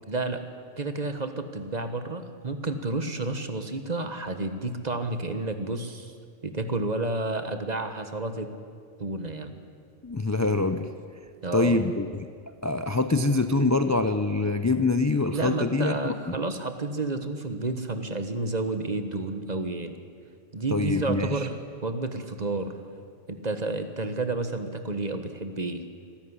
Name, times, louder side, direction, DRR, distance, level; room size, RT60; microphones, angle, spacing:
voice 1, 0.1-0.4 0.8-6.1 6.4-8.5 9.0-9.6 11.4-11.8 15.3-20.0 20.5-22.7 23.3-25.8, right 2 dB, 35° right, 8 dB, 1.5 m, -30 dB
voice 2, 10.0-10.9 11.5-12.1 12.6-16.4 20.7-21.4, left 3 dB, 20° left, 9 dB, 0.6 m, -24 dB
25.0 x 13.5 x 9.9 m, 2.2 s
omnidirectional pair, 1.2 m